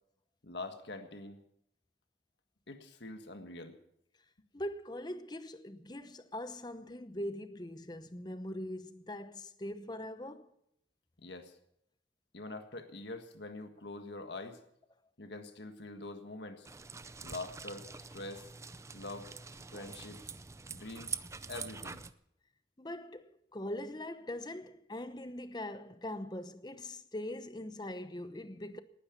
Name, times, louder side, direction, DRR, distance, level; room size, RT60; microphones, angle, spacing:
voice 1, 0.4-1.4 2.7-3.8 11.2-11.5 12.3-14.6 15.2-16.7 17.2-18.5 18.9-19.3 19.7-20.2 20.7-21.2 21.5-22.0, left 2 dB, 70° left, 1.6 m, -44 dB
voice 2, 4.5-10.5 22.8-28.8, left 1 dB, 25° left, 0.9 m, -42 dB
sound 1, 16.6-22.1, right 5 dB, 15° right, 0.5 m, -45 dB
19.0 x 9.9 x 7.0 m
head